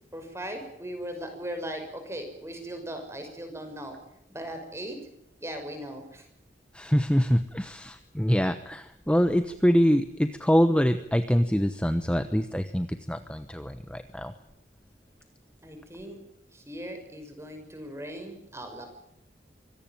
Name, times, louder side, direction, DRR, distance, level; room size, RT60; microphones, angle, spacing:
voice 1, 0.1-4.0 4.3-5.0 5.4-6.3 15.6-16.2 16.5-18.9, right 1 dB, 15° right, 6 dB, 6.0 m, -38 dB
voice 2, 6.7-14.3, equal, 5° left, 10 dB, 1.0 m, -25 dB
25.0 x 17.5 x 9.2 m, 0.75 s
head